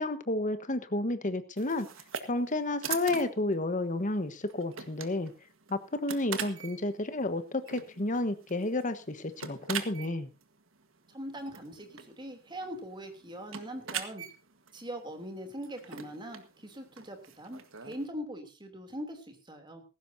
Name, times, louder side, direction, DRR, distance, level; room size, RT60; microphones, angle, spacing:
voice 1, 0.0-1.9 2.3-5.3 5.7-10.3, left 2 dB, 35° left, 11 dB, 1.3 m, -31 dB
sound 1, 1.6-18.1, right 7 dB, 65° right, 1.6 m, -43 dB
voice 2, 11.1-14.2 14.7-19.8, equal, 20° right, 5 dB, 3.1 m, -41 dB
17.5 x 15.5 x 2.8 m, 0.31 s
head